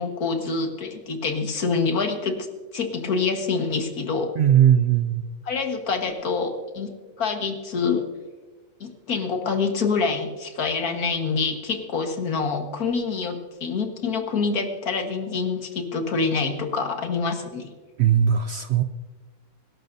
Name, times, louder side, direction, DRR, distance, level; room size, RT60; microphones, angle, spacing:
voice 1, 0.0-2.5 2.7-4.3 5.5-8.1 8.8-17.7, left 4 dB, 80° left, 5 dB, 2.0 m, -26 dB
voice 2, 4.4-5.2 18.0-18.8, right 9 dB, 65° right, 10 dB, 0.7 m, -19 dB
24.5 x 12.0 x 2.7 m, 1.3 s
omnidirectional pair, 1.6 m